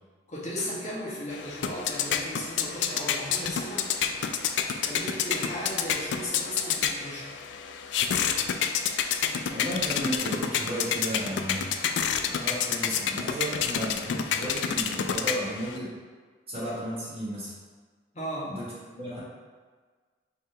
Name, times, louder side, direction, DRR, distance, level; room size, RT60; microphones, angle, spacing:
voice 1, 0.3-3.9 4.7-7.3 18.1-18.5, equal, 40° left, -7 dB, 1.2 m, -36 dB
sound 1, 1.3-15.8, left 7 dB, 85° left, 0.3 m, -29 dB
voice 2, 9.5-11.7 12.4-15.9 16.5-17.5 18.4-18.6 18.9-19.2, right 1 dB, 35° right, -7 dB, 1.4 m, -34 dB
5.6 x 2.8 x 3.3 m, 1.5 s
head